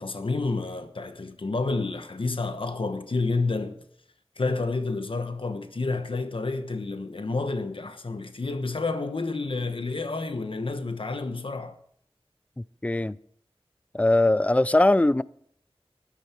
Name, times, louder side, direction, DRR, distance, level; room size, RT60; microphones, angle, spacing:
voice 1, 0.0-3.8 4.4-11.8, left 3 dB, 60° left, 1.1 m, -29 dB
voice 2, 12.6-13.2 13.9-15.2, left 2 dB, 15° left, 0.4 m, -21 dB
12.5 x 11.5 x 4.5 m
wide cardioid pair, 55°, 10 cm